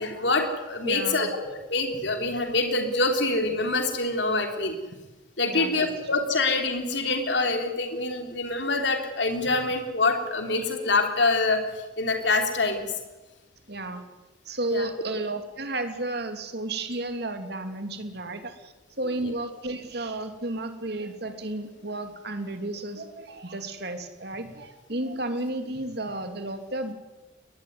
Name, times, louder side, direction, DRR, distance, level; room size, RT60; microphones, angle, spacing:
voice 1, 0.0-4.7 5.4-12.9 14.7-14.9, left 3 dB, 65° left, 4 dB, 3.4 m, -25 dB
voice 2, 0.8-1.3 2.1-2.2 5.4-6.2 9.4-9.5 13.7-14.0 14.4-26.9, right 2 dB, 55° right, 7 dB, 2.9 m, -33 dB
22.0 x 19.0 x 9.5 m, 1.1 s
head